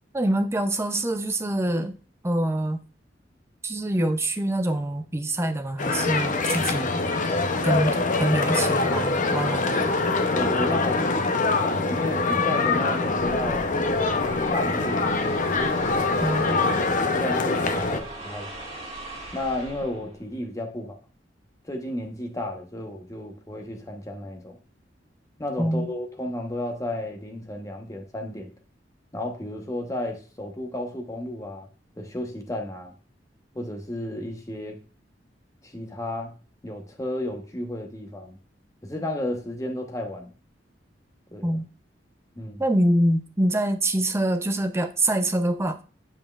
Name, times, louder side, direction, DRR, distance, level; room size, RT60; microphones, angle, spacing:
voice 1, 0.1-1.9 2.2-2.8 3.6-7.0 7.6-10.0 16.2-16.6 25.6-25.9 41.4-41.7 42.6-45.8, right 1 dB, 15° right, 0.5 m, -25 dB
sound 1, 5.8-18.0, left 3 dB, 45° left, 0.6 m, -24 dB
voice 2, 10.3-13.7 14.3-15.0 15.5-16.6 17.0-18.5 19.3-21.0 21.6-24.6 25.4-28.5 29.1-31.7 32.0-32.9 33.5-34.8 35.6-36.3 36.6-38.4 38.8-40.3 41.3-41.6 42.3-42.6, left 1 dB, 20° left, 1.0 m, -33 dB
sound 2, 13.1-20.3, right 1 dB, 35° right, 1.8 m, -41 dB
7.1 x 5.5 x 2.4 m
head